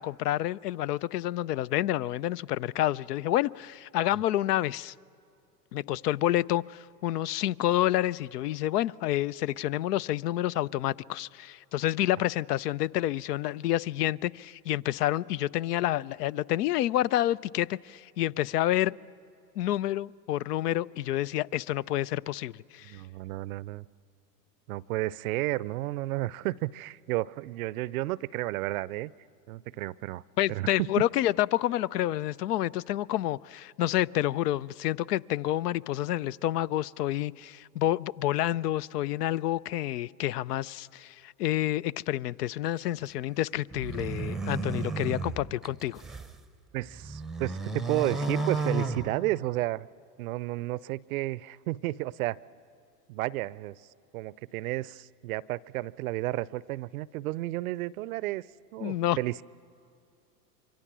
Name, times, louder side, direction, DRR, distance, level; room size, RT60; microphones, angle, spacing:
voice 1, 0.0-4.9 5.7-18.9 19.6-23.0 30.4-46.0 58.8-59.2, left 13 dB, 70° left, 0.6 m, -29 dB
voice 2, 22.8-23.8 24.7-29.1 29.5-30.2 30.5-30.9 46.7-49.9 50.2-52.4 53.1-53.8 54.1-58.4 58.7-59.4, right 18 dB, 60° right, 0.6 m, -32 dB
sound 1, 43.7-46.4 46.8-49.7, right 3 dB, ahead, 0.7 m, -33 dB
27.0 x 24.0 x 6.1 m
hypercardioid pair, 105°, 49 cm